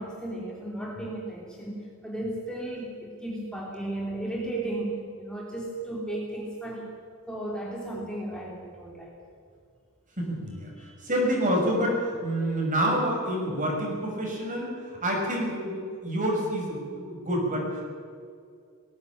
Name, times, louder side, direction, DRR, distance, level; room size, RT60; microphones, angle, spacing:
voice 1, 0.0-6.9 7.3-9.1 10.8-10.9, right 1 dB, 5° left, -3 dB, 3.2 m, -35 dB
voice 2, 10.2-10.7 11.0-17.8, equal, 35° right, 0 dB, 6.3 m, -28 dB
19.0 x 17.0 x 8.8 m, 2.3 s
head